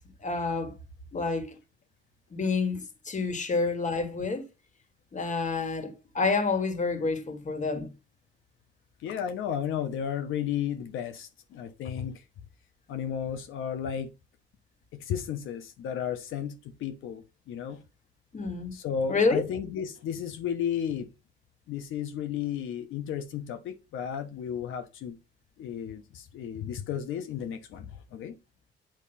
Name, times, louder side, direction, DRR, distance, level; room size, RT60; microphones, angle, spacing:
voice 1, 0.2-0.7 1.1-1.6 2.3-4.5 5.1-7.9 18.3-18.8 19.1-19.4, left 4 dB, 40° left, 2.0 m, -28 dB
voice 2, 9.0-12.2 12.9-14.1 14.9-17.8 18.7-21.1 21.7-25.2 25.6-28.4, left 8 dB, 85° left, 1.1 m, -33 dB
9.0 x 3.1 x 5.7 m
cardioid pair, 90°, 20 cm